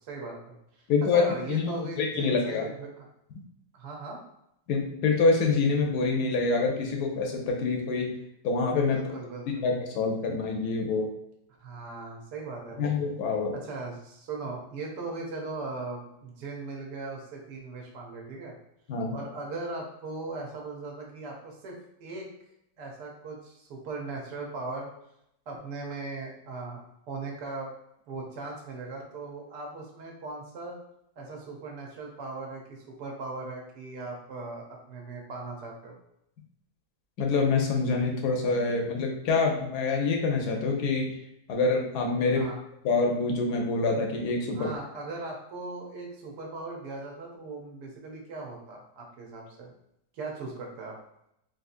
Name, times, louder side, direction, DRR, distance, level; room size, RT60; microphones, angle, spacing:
voice 1, 0.0-2.9 3.7-4.2 8.9-9.6 11.6-12.9 13.5-18.6 19.1-22.3 22.8-24.9 25.5-27.7 28.1-30.8 31.2-36.0 42.2-42.6 44.5-49.7 50.1-51.0, right 3 dB, 75° right, 0 dB, 1.3 m, -39 dB
voice 2, 0.9-2.7 4.7-8.1 8.4-9.0 9.5-11.1 12.8-13.5 18.9-19.2 37.2-41.1 41.5-42.4 42.8-44.7, left 4 dB, 75° left, 1 dB, 1.1 m, -26 dB
3.6 x 2.7 x 2.5 m, 0.79 s
omnidirectional pair, 1.8 m